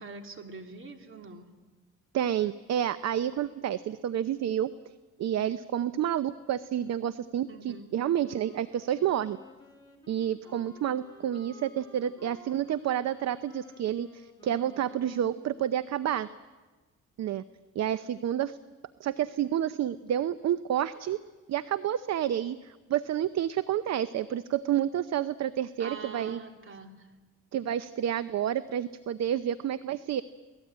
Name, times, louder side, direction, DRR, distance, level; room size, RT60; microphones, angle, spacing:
voice 1, 0.0-1.5 7.5-7.9 25.8-27.1, right 4 dB, 45° right, 5 dB, 3.1 m, -44 dB
voice 2, 2.1-4.7 5.2-9.4 10.1-16.3 17.2-17.4 17.7-18.6 19.0-21.2 21.5-26.4 27.5-30.2, right 10 dB, 60° right, 14 dB, 0.8 m, -29 dB
Wind instrument woodwind instrument, 8.2-15.9, left 2 dB, 15° left, 4.9 m, -55 dB
28.0 x 19.0 x 8.8 m, 1.3 s
cardioid pair, 90°, 30 cm